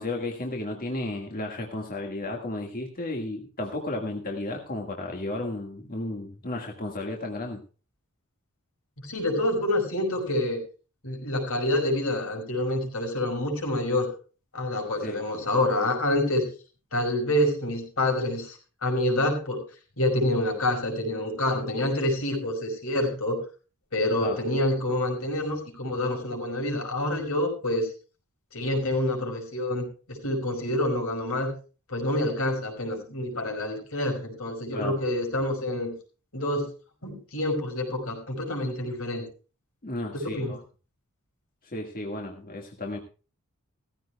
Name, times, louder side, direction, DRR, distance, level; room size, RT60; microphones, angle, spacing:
voice 1, 0.0-7.6 15.0-15.2 24.2-24.4 34.7-35.0 39.8-40.6 41.6-43.0, left 2 dB, 45° left, 1 dB, 1.8 m, -33 dB
voice 2, 9.0-10.6 11.0-14.1 14.5-16.5 16.9-19.6 20.0-23.4 23.9-27.9 28.5-31.5 31.9-35.9 36.3-36.7 37.0-39.2 40.1-40.6, left 1 dB, 75° left, 2 dB, 5.4 m, -27 dB
17.0 x 15.0 x 2.3 m, 0.35 s
head